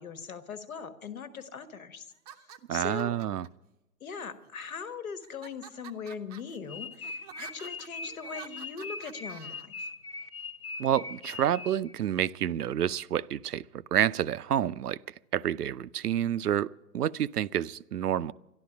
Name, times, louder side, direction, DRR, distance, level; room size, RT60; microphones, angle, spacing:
voice 1, 0.0-2.1 2.4-3.1 4.0-9.9, left 6 dB, 60° left, 12 dB, 1.4 m, -40 dB
sound 1, 2.1-3.5 4.2-4.7 5.2-9.6, right 9 dB, 25° right, 0.6 m, -50 dB
voice 2, 2.7-3.5 10.8-13.6 13.9-15.0 15.3-18.3, right 10 dB, 75° right, 18 dB, 0.6 m, -28 dB
sound 2, 6.7-12.0, left 4 dB, 20° left, 0.5 m, -41 dB
12.5 x 11.5 x 8.6 m, 0.95 s
figure-of-eight pair, 125°, 47 cm